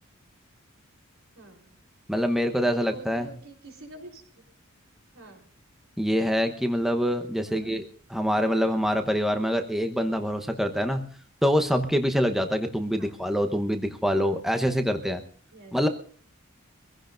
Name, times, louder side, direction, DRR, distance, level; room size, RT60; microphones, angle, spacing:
voice 1, 1.4-1.7 2.5-4.2 5.1-5.5 7.4-7.7 13.0-13.1 15.5-15.7, right 2 dB, 75° right, 1 dB, 4.0 m, -46 dB
voice 2, 2.1-3.3 6.0-7.8 8.1-11.1 11.4-15.2 15.7-15.9, equal, ahead, 6 dB, 0.9 m, -25 dB
24.5 x 16.0 x 2.6 m, 0.44 s
head